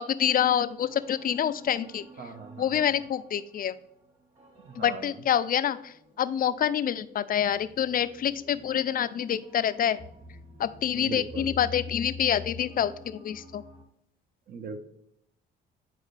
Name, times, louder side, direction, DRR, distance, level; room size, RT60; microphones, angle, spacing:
voice 1, 0.0-2.1 2.6-3.8 4.8-5.8 6.2-10.0 10.6-12.9 13.2-13.6, left 9 dB, 45° left, 14 dB, 0.4 m, -26 dB
sound 1, 0.8-13.8, left 3 dB, 35° right, 2.4 m, -47 dB
voice 2, 2.2-2.9 4.6-5.1 10.9-11.5 14.5-14.8, right 4 dB, 50° right, 7 dB, 1.0 m, -39 dB
9.1 x 4.5 x 3.3 m, 0.76 s
cardioid pair, 90°, 20 cm